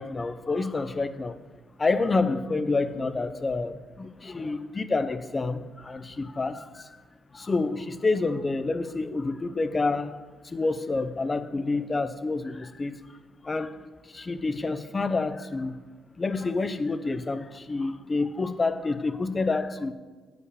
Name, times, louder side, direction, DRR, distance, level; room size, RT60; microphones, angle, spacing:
voice 1, 0.0-1.4 1.8-7.0 7.3-13.2 13.4-15.8 16.2-19.9, left 3 dB, 25° left, 12 dB, 0.6 m, -28 dB
8.6 x 5.0 x 6.6 m, 1.4 s
cardioid pair, 90°, 0 cm